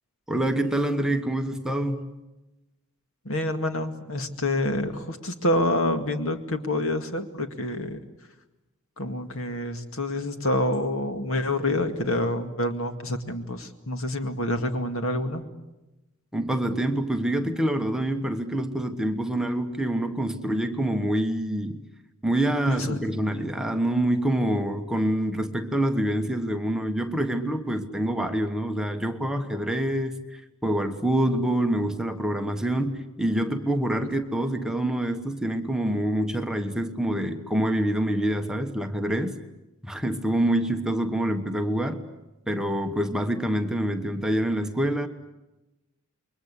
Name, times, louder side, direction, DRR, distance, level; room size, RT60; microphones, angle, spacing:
voice 1, 0.3-2.1 16.3-21.8 22.2-39.4 39.9-42.0 42.5-45.1, right 1 dB, 5° right, 5 dB, 1.2 m, -26 dB
voice 2, 3.2-8.0 9.0-15.4 22.7-23.1 23.3-23.5, left 1 dB, 65° left, 7 dB, 2.2 m, -27 dB
28.5 x 23.0 x 8.4 m, 1.0 s
head